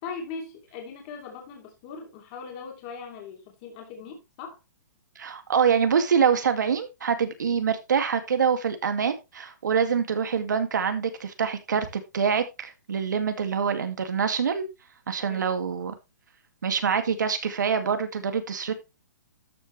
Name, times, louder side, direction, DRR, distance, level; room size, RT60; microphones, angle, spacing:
voice 1, 0.0-4.6 15.3-15.5, left 5 dB, 25° left, 2.9 m, -40 dB
voice 2, 5.2-14.6 15.1-15.9 16.6-18.7, right 6 dB, 85° right, 2.3 m, -25 dB
13.0 x 6.8 x 3.3 m
hypercardioid pair, 170°, 10 cm